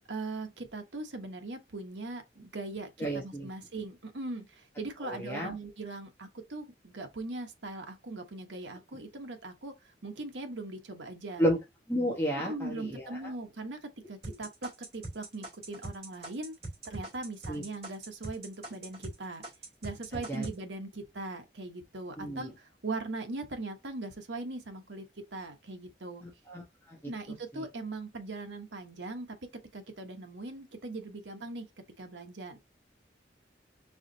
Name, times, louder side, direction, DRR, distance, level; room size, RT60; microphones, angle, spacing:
voice 1, 0.1-11.4 12.3-16.5 16.8-19.4 19.8-26.3 27.1-29.4 29.7-31.7 32.0-32.6, right 2 dB, 90° right, 1.2 m, -40 dB
voice 2, 3.0-3.5 5.0-5.5 11.4-11.6 11.9-13.2 17.5-17.6 20.3-20.4 22.2-22.5 26.5-27.0 27.5-27.6, equal, 15° left, 1.4 m, -31 dB
sound 1, 14.2-19.2 19.4-20.6, right 2 dB, 30° right, 3.3 m, -41 dB
4.8 x 3.8 x 2.7 m
head